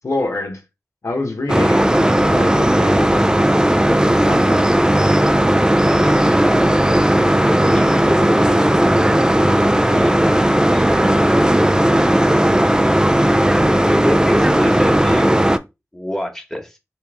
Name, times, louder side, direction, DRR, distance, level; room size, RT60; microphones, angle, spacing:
voice 1, 0.0-0.6 1.0-4.7 9.9-10.2, left 2 dB, 65° left, 0.9 m, -26 dB
sound 1, 1.5-15.6, right 1 dB, 15° right, 0.4 m, -15 dB
voice 2, 5.6-7.1 7.4-9.0 9.4-15.4 15.9-16.8, equal, 5° left, 1.2 m, -28 dB
3.3 x 2.9 x 3.4 m
cardioid pair, 45°, 5 cm